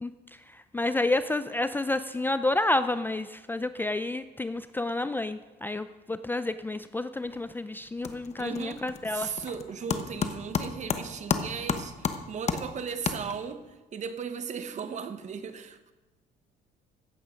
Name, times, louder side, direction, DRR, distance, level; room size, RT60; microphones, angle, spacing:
voice 1, 0.7-9.3, left 2 dB, 10° left, 12 dB, 0.4 m, -29 dB
sound 1, 7.2-7.5 7.8-13.7, left 6 dB, 40° left, 1.0 m, -33 dB
voice 2, 8.4-15.9, right 6 dB, 45° right, 10 dB, 1.1 m, -37 dB
15.5 x 8.5 x 5.2 m, 1.1 s
cardioid pair, 110°, 17 cm